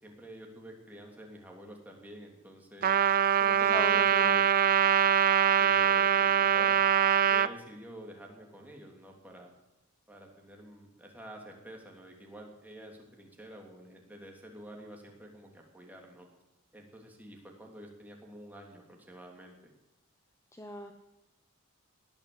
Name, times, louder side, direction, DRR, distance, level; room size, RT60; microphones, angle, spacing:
voice 1, 0.0-3.0 3.4-4.5 5.6-6.8 7.3-9.5 10.1-16.3 16.7-19.7, right 1 dB, 10° right, 0 dB, 3.0 m, -49 dB
Trumpet, 2.8-7.5, right 8 dB, 40° right, 0.5 m, -23 dB
voice 2, 3.6-4.4 20.5-20.9, left 1 dB, 15° left, 5 dB, 0.9 m, -38 dB
19.0 x 8.7 x 8.0 m, 0.94 s
head